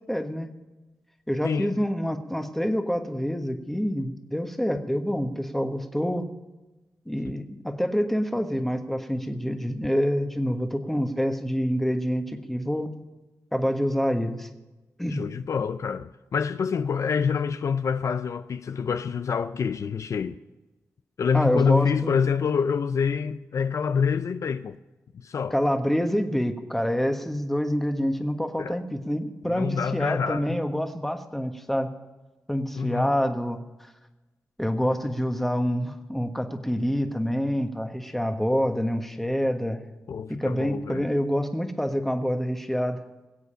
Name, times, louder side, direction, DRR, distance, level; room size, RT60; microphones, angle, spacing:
voice 1, 0.1-0.5 1.3-6.2 7.1-12.9 13.5-14.5 15.0-15.2 21.3-22.2 25.5-31.9 32.5-33.6 34.6-39.8 40.3-43.0, equal, 5° left, 1.3 m, -27 dB
voice 2, 1.4-1.8 15.1-20.4 21.2-24.8 25.1-25.5 28.6-28.8 29.4-30.6 32.7-33.1 40.1-41.1, left 6 dB, 65° left, 0.5 m, -26 dB
21.0 x 8.2 x 5.7 m
cardioid pair, 80°, 6 cm